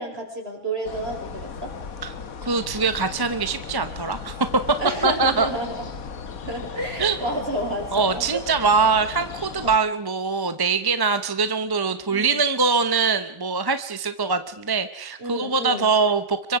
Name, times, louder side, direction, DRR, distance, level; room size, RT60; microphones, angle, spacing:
voice 1, 0.0-1.7 4.8-6.0 6.4-8.2 9.6-9.7 12.0-12.4 15.2-15.9, right 1 dB, 45° right, 1 dB, 5.6 m, -30 dB
sound 1, 0.8-9.8, left 6 dB, 75° left, 1.7 m, -37 dB
voice 2, 2.4-4.4 4.7-4.8 5.0-5.5 7.0-7.2 7.9-16.6, right 4 dB, 20° right, 10 dB, 0.7 m, -23 dB
25.5 x 23.0 x 4.9 m, 0.78 s
omnidirectional pair, 1.5 m